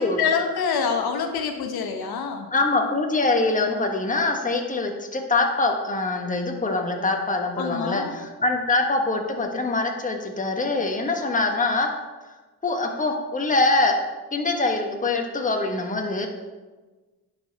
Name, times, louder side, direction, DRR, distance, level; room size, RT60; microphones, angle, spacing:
voice 1, 0.2-2.5 7.6-8.1, left 6 dB, 80° left, 5 dB, 1.0 m, -26 dB
voice 2, 2.5-11.9 12.6-14.0 14.3-16.3, left 3 dB, 20° left, 2 dB, 1.3 m, -24 dB
10.5 x 5.3 x 4.1 m, 1.3 s
cardioid pair, 90°, 37 cm